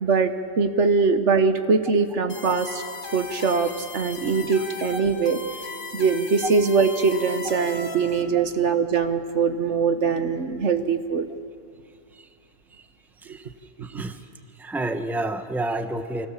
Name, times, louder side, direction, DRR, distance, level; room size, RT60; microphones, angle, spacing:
voice 1, 0.0-2.8 3.1-5.4 5.9-11.3 13.9-14.0, right 5 dB, 65° right, 9 dB, 1.5 m, -22 dB
sound 1, 2.3-8.2, left 3 dB, 45° left, 1.8 m, -37 dB
voice 2, 13.8-14.3 14.6-16.3, right 2 dB, ahead, 8 dB, 1.0 m, -30 dB
30.0 x 24.5 x 7.3 m, 2.2 s
omnidirectional pair, 1.3 m